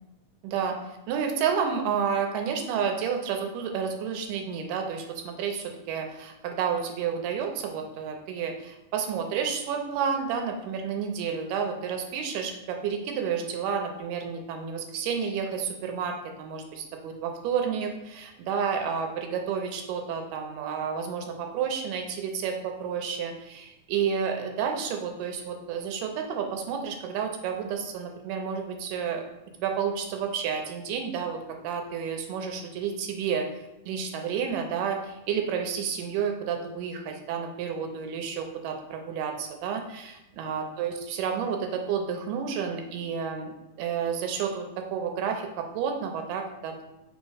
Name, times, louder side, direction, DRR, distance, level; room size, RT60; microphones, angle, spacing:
voice 1, 0.4-0.8 1.1-29.2 29.6-33.5 33.9-46.9, right 7 dB, 85° right, 4 dB, 2.2 m, -30 dB
5.0 x 2.1 x 4.8 m, 0.95 s
omnidirectional pair, 3.7 m